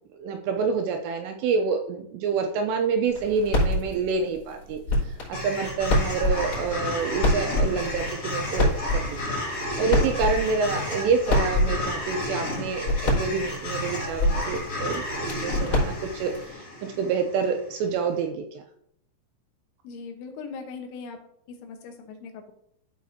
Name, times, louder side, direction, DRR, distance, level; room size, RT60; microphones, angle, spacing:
voice 1, 0.1-4.8 5.3-9.2 9.8-18.6, right 5 dB, 80° right, 4 dB, 2.6 m, -27 dB
sound 1, 3.1-16.5, left 1 dB, 30° left, 3.9 m, -28 dB
sound 2, 5.3-17.6, left 1 dB, 55° left, 0.9 m, -32 dB
voice 2, 19.9-21.2 21.6-22.5, left 5 dB, 85° left, 3 dB, 3.4 m, -39 dB
13.0 x 5.0 x 2.7 m, 0.71 s
omnidirectional pair, 5.4 m